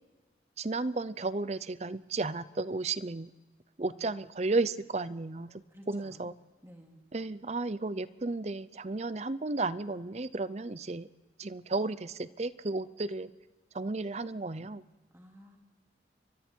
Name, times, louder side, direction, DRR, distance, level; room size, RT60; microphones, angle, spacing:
voice 1, 0.6-3.3 3.8-5.6 5.9-6.3 7.1-11.1 11.4-13.3 13.7-14.8, right 3 dB, 35° right, 16 dB, 0.6 m, -33 dB
voice 2, 3.9-4.3 5.7-6.3 6.6-7.0 15.1-15.6, equal, 15° right, 1 dB, 2.9 m, -54 dB
29.5 x 24.0 x 4.6 m, 1.2 s
head